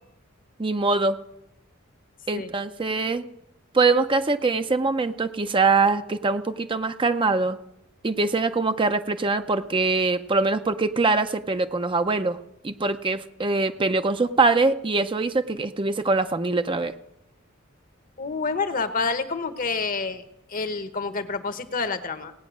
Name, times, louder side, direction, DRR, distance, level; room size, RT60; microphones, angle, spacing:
voice 1, 0.6-1.2 2.3-3.2 3.7-7.6 8.0-12.4 12.6-16.9, right 3 dB, 25° right, 8 dB, 0.6 m, -23 dB
voice 2, 18.2-20.2 20.5-22.3, left 4 dB, 40° left, 10 dB, 1.0 m, -28 dB
18.0 x 8.8 x 6.2 m, 0.83 s
head